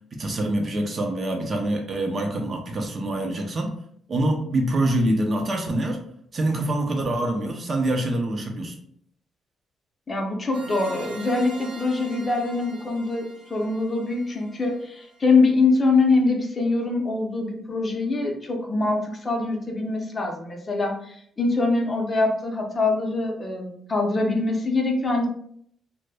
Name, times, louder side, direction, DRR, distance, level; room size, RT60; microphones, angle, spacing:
voice 1, 0.1-3.7 4.1-6.0 6.3-8.7, right 1 dB, 40° right, 2 dB, 0.5 m, -25 dB
voice 2, 10.1-25.3, left 3 dB, 30° left, 2 dB, 0.5 m, -24 dB
sound 1, 10.5-15.2, right 3 dB, 85° right, 0.6 m, -43 dB
2.0 x 2.0 x 3.3 m, 0.65 s
cardioid pair, 90°, 0 cm